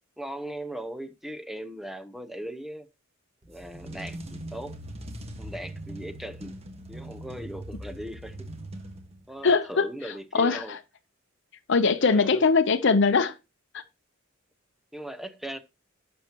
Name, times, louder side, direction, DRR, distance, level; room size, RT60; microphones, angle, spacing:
voice 1, 0.2-2.9 3.5-4.7 5.4-6.5 6.9-8.4 9.3-10.8 12.0-12.5 14.9-15.6, right 1 dB, ahead, 0.7 m, -38 dB
sound 1, 3.4-9.4, right 1 dB, 30° right, 1.5 m, -41 dB
voice 2, 9.4-10.8 11.7-13.3 13.7-13.8, left 4 dB, 60° left, 0.7 m, -22 dB
11.5 x 7.2 x 2.9 m
head